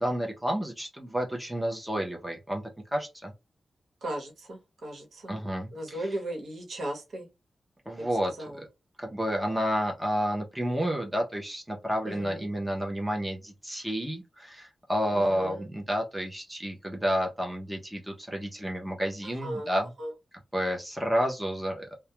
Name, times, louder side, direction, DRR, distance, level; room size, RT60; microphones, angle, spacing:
voice 1, 0.0-2.6 2.9-3.3 5.3-6.0 7.9-8.7 9.0-19.9 20.5-21.9, equal, 5° right, 0.5 m, -30 dB
voice 2, 4.0-5.4 5.7-7.3 8.4-8.6 12.0-12.4 15.1-15.7 19.2-19.7 20.0-20.1, right 1 dB, 75° right, 1.0 m, -36 dB
2.2 x 2.1 x 2.9 m
wide cardioid pair, 175°, 0 cm